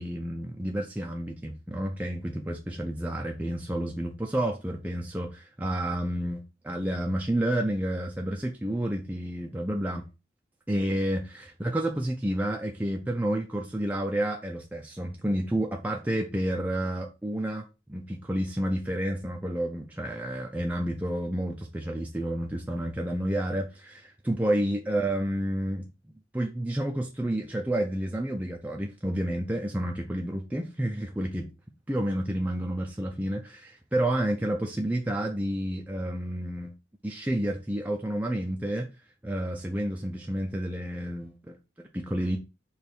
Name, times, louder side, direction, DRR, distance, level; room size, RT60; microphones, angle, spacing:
voice 1, 0.0-10.1 10.7-25.9 26.3-31.5 31.9-36.7 37.0-38.9 39.2-42.4, right 1 dB, 10° right, 0.4 m, -30 dB
5.0 x 2.4 x 4.5 m
head